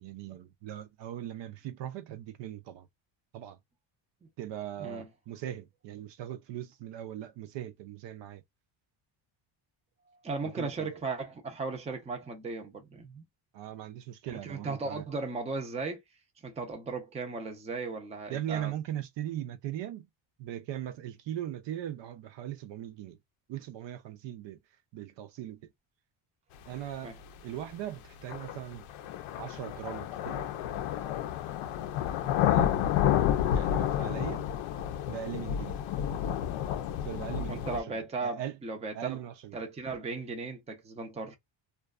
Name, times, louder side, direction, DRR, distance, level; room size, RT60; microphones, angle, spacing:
voice 1, 0.0-2.9 3.3-3.6 4.4-8.4 10.6-10.9 13.5-15.0 18.3-20.1 20.4-23.2 23.5-24.6 24.9-25.6 26.7-27.2 27.4-28.8 29.4-30.5 32.2-32.8 33.5-34.4 35.1-35.8 37.0-38.6 38.9-39.6, right 11 dB, 60° right, 0.5 m, -39 dB
voice 2, 10.2-13.2 14.3-16.0 16.4-18.7 27.0-27.2 37.5-39.2 39.5-41.4, right 3 dB, 15° right, 0.5 m, -36 dB
sound 1, 27.2-27.3 28.3-37.8, left 10 dB, 80° left, 0.6 m, -30 dB
2.4 x 2.3 x 2.3 m
cardioid pair, 140°, 49 cm